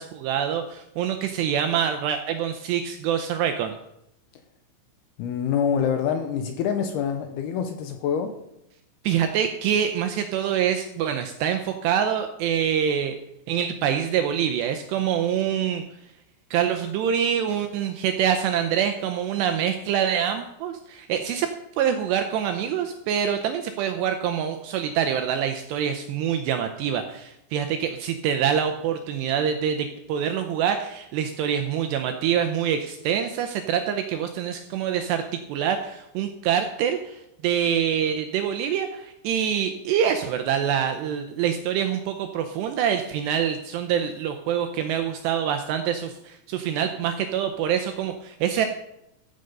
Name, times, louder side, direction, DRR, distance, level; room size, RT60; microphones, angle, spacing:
voice 1, 0.0-3.8 9.0-13.2 13.5-15.8 16.5-21.5 21.8-35.2 35.5-48.7, right 8 dB, 80° right, 7 dB, 2.5 m, -25 dB
voice 2, 5.2-8.4, left 7 dB, 85° left, 7 dB, 2.3 m, -26 dB
15.0 x 7.9 x 5.3 m, 0.82 s
omnidirectional pair, 5.7 m